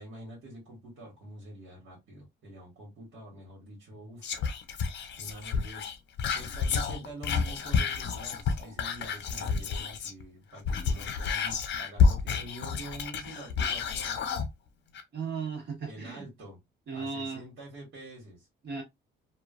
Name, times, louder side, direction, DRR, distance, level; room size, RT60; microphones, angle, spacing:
voice 1, 0.0-4.4 5.2-5.9 6.3-14.3 15.8-16.6 16.9-18.5, right 1 dB, 75° right, 1.5 m, -46 dB
Whispering, 4.2-10.2 10.5-14.5 14.9-15.0, left 5 dB, 65° left, 0.7 m, -29 dB
voice 2, 15.1-16.2 16.9-17.4 18.6-18.8, right 5 dB, 55° right, 1.4 m, -36 dB
3.1 x 2.3 x 2.3 m
cardioid pair, 90°, 20 cm